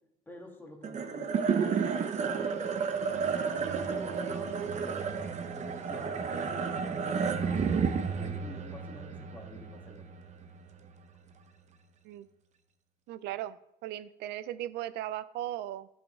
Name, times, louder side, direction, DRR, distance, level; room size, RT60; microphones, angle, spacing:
voice 1, 0.3-2.8 3.3-5.1 5.5-10.1, left 2 dB, 10° left, 0 dB, 1.8 m, -48 dB
sound 1, 0.8-11.3, right 6 dB, 45° right, 0.8 m, -32 dB
voice 2, 13.1-15.9, right 13 dB, 85° right, 16 dB, 0.4 m, -38 dB
12.0 x 5.6 x 3.3 m, 0.85 s
cardioid pair, 110°, 17 cm